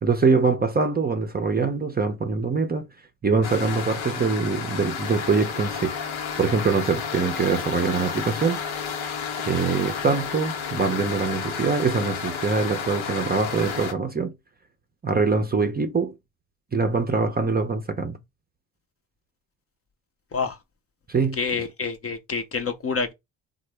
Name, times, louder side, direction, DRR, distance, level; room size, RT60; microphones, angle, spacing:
voice 1, 0.0-2.9 3.2-5.9 6.4-8.6 9.5-14.3 15.0-16.1 16.7-18.2 21.1-21.4, right 4 dB, 20° right, 0.5 m, -23 dB
sound 1, 3.4-13.9, left 6 dB, 80° left, 0.8 m, -31 dB
voice 2, 21.4-23.1, left 5 dB, 30° left, 0.6 m, -27 dB
3.3 x 2.0 x 3.2 m
supercardioid pair, 60°, 46 cm